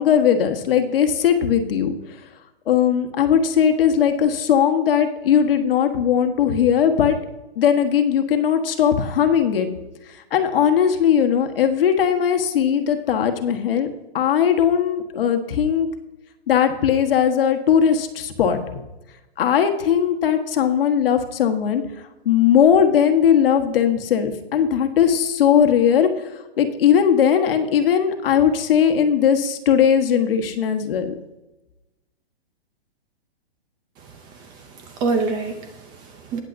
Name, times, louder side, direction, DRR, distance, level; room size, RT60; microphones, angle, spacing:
voice 1, 0.0-1.9 2.7-7.2 7.6-9.7 10.3-13.9 14.1-15.9 16.5-18.6 19.4-21.8 22.2-26.1 26.6-31.1, left 8 dB, 65° left, 6 dB, 1.3 m, -18 dB
voice 2, 34.4-36.4, right 4 dB, 15° right, 6 dB, 0.5 m, -27 dB
19.5 x 7.4 x 2.6 m, 1.0 s
hypercardioid pair, 155°, 31 cm